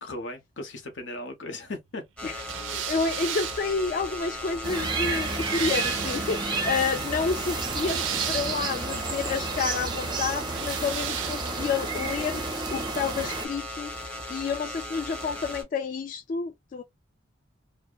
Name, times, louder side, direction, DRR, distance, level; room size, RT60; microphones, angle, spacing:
voice 1, 0.0-2.3, left 2 dB, 85° left, 0.8 m, -37 dB
sound 1, 2.2-15.6, left 1 dB, 5° left, 0.8 m, -38 dB
sound 2, 2.4-6.5 7.4-8.8 10.5-11.8, right 11 dB, 85° right, 0.4 m, -36 dB
voice 2, 2.7-12.4 12.7-14.0 14.3-16.8, left 5 dB, 45° left, 0.3 m, -30 dB
sound 3, 4.6-13.5, right 4 dB, 25° right, 0.4 m, -31 dB
2.7 x 2.1 x 2.2 m
head